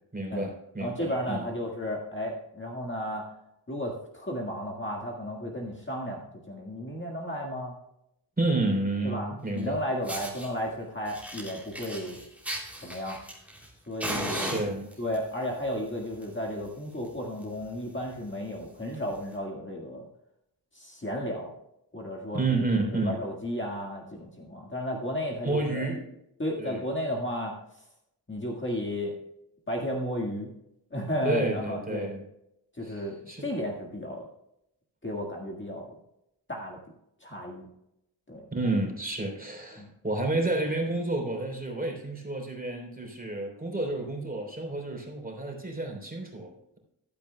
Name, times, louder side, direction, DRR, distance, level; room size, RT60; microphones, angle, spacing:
voice 1, 0.1-1.5 8.4-9.8 14.3-14.9 22.3-23.2 25.4-26.1 26.6-26.8 31.2-32.2 32.8-33.5 38.5-46.8, right 2 dB, 20° right, 1 dB, 3.5 m, -30 dB
voice 2, 0.8-3.3 3.7-7.7 9.0-12.2 12.8-13.2 13.9-14.6 15.0-20.0 20.7-21.5 21.9-25.9 26.4-27.6 28.3-29.2 29.7-30.5 30.9-32.1 32.8-34.3 35.0-35.9 36.5-36.8 37.2-37.7 38.3-38.5 39.8-39.9, equal, 25° left, -2 dB, 1.7 m, -33 dB
Fire, 9.6-9.7 10.0-10.5 11.0-13.7 14.0-15.2 16.0-16.2 16.6-16.7 17.0-17.1 17.4-17.6 18.2-18.3 19.2-19.3, right 1 dB, 5° right, 2.9 m, -36 dB
15.0 x 12.5 x 2.2 m, 0.82 s
wide cardioid pair, 120°, 43 cm